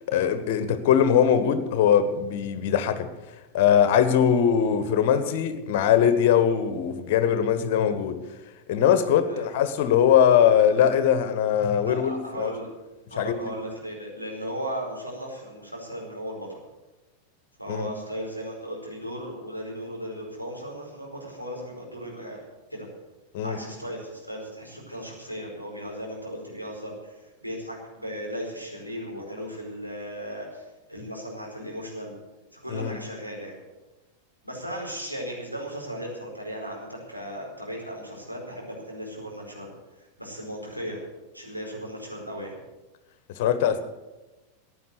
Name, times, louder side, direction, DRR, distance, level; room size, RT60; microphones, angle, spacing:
voice 1, 0.0-3.1 3.5-8.2 8.7-12.5 13.2-13.5 17.7-17.9 23.3-23.6 32.7-33.0 43.3-43.8, left 8 dB, 50° left, 11 dB, 1.4 m, -21 dB
voice 2, 11.8-12.7 13.1-16.6 17.6-22.4 22.7-22.9 23.4-32.2 32.5-33.5 34.4-41.0 41.3-42.6, equal, 90° right, -2 dB, 4.8 m, -36 dB
15.0 x 10.0 x 8.0 m, 1.1 s
figure-of-eight pair, 90°, 0 cm